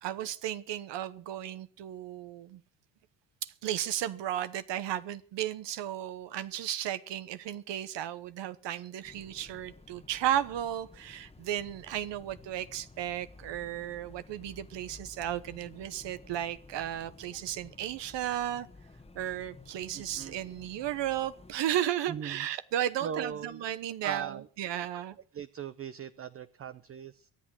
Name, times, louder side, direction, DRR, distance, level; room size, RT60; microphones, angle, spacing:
voice 1, 0.0-2.6 3.4-18.7 19.1-25.2, right 11 dB, 65° right, 13 dB, 1.0 m, -34 dB
sound 1, 9.0-21.6, left 3 dB, 15° left, 1.3 m, -53 dB
voice 2, 19.9-20.4 22.1-22.5 23.0-23.6 24.0-24.5 25.3-27.3, right 8 dB, 30° right, 13 dB, 0.6 m, -39 dB
23.0 x 8.2 x 6.2 m, 0.43 s
cardioid pair, 105°, 46 cm